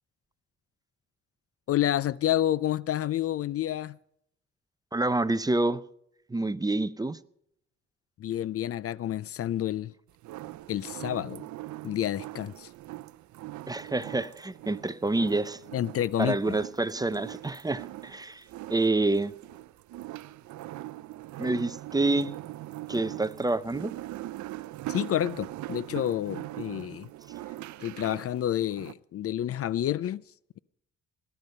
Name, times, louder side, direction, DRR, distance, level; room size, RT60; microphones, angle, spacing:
voice 1, 1.7-4.0 8.2-9.9 10.7-11.5 11.8-12.7 15.7-16.6 24.9-27.1 27.8-30.2, left 12 dB, 50° left, 0.4 m, -29 dB
voice 2, 4.9-5.8 6.3-7.2 13.7-15.6 16.2-18.4 18.7-19.3 21.4-22.3 22.9-23.9, right 2 dB, 15° right, 0.6 m, -27 dB
sound 1, 10.2-28.9, right 16 dB, 70° right, 0.6 m, -41 dB
18.5 x 11.0 x 5.5 m
cardioid pair, 90°, 30 cm